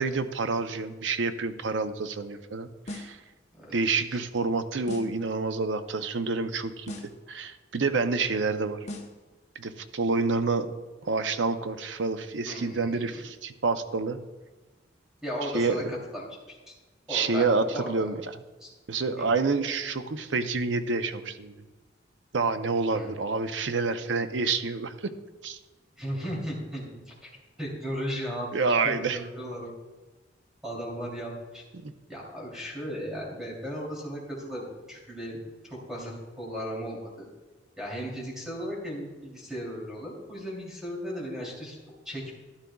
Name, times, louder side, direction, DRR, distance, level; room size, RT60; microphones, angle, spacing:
voice 1, 0.0-3.2 3.7-7.0 7.3-8.8 9.6-10.7 11.0-14.2 15.5-15.9 17.1-18.2 18.9-21.5 22.3-25.1 25.4-25.6 28.5-29.2 31.8-31.9, right 4 dB, 85° right, 10 dB, 0.6 m, -28 dB
sound 1, 2.9-3.3 4.9-5.3 6.9-7.3 8.9-9.3, left 1 dB, 40° left, 1.1 m, -39 dB
voice 2, 12.4-13.2 15.2-16.7 17.1-18.1 18.6-18.7 19.2-19.3 22.9-23.1 26.0-27.3 27.6-28.5 28.8-29.7 30.6-31.6 32.1-35.4 35.6-37.3 37.8-41.7 42.0-42.3, equal, 5° right, -4 dB, 3.0 m, -36 dB
13.0 x 11.0 x 2.3 m, 1.2 s
head